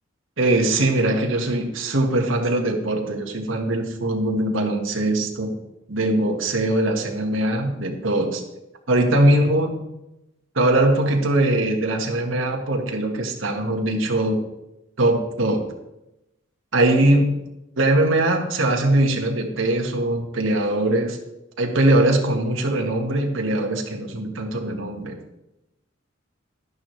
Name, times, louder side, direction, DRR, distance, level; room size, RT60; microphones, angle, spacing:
voice 1, 0.4-5.6 5.9-8.4 8.9-9.8 10.5-14.4 15.0-15.6 16.7-17.4 17.8-21.2 21.6-25.2, right 1 dB, 85° right, 2 dB, 1.5 m, -21 dB
11.5 x 11.0 x 3.2 m, 0.92 s
head